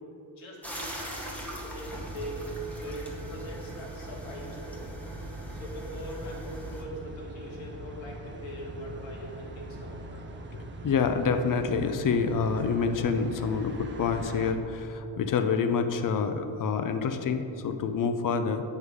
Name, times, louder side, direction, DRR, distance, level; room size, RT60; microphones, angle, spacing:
voice 1, 0.4-2.4 2.7-4.8 5.3-10.3, equal, 85° left, -2 dB, 1.9 m, -42 dB
sound 1, 0.6-6.8, right 1 dB, 5° left, 0.8 m, -41 dB
sound 2, 1.8-14.5, right 1 dB, 25° right, 0.5 m, -42 dB
voice 2, 10.5-18.6, left 5 dB, 45° left, 8 dB, 0.5 m, -27 dB
8.1 x 5.4 x 4.7 m, 2.9 s
cardioid pair, 160°, 46 cm